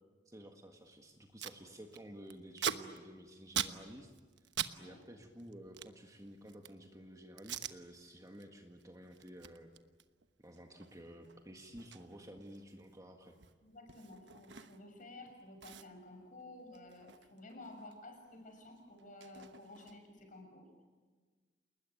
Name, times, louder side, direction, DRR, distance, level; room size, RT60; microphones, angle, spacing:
voice 1, 0.3-4.1 4.8-9.7 10.4-13.4, equal, 20° right, 3 dB, 1.8 m, -52 dB
Packing tape duct tape, 0.9-1.0 1.1-1.6 1.9-4.8 5.0-6.9 7.4-7.8 8.2-8.5 8.8-15.0 15.3-15.4 15.6-18.0 18.3-20.2, right 9 dB, 75° right, 1.1 m, -44 dB
voice 2, 13.6-20.7, left 2 dB, 45° left, 4 dB, 6.8 m, -53 dB
30.0 x 20.5 x 9.2 m, 1.4 s
head